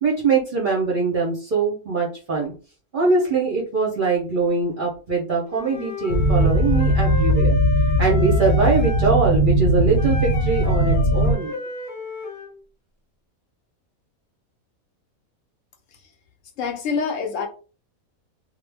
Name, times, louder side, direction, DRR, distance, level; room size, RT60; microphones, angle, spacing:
voice 1, 0.0-2.5 2.9-7.6 8.0-11.5, right 4 dB, 50° right, 0.6 m, -22 dB
Wind instrument woodwind instrument, 5.5-9.1 10.0-12.5, left 2 dB, 40° left, 0.8 m, -33 dB
sound 1, 6.1-11.3, equal, 90° left, 0.4 m, -19 dB
voice 2, 16.6-17.5, left 5 dB, 70° left, 0.9 m, -25 dB
2.3 x 2.0 x 3.2 m
omnidirectional pair, 1.5 m